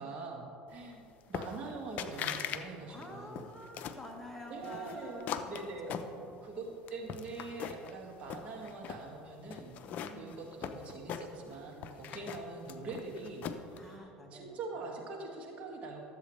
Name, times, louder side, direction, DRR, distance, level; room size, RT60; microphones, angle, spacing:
voice 1, 0.0-3.5 4.5-6.0 6.4-9.8 10.0-13.5 13.8-16.0, right 3 dB, 40° right, -1 dB, 1.8 m, -43 dB
sound 1, 1.3-1.7 2.0-2.6 3.0-4.1 4.6-6.5 6.9-7.9 8.2-9.0 9.5-11.5 11.8-13.8, left 8 dB, 55° left, 0.5 m, -40 dB
voice 2, 2.9-5.5 5.9-6.5 9.9-10.4 13.8-14.6, left 1 dB, 5° left, 0 dB, 1.4 m, -49 dB
12.0 x 8.1 x 3.2 m, 2.7 s
supercardioid pair, 95°, 3 cm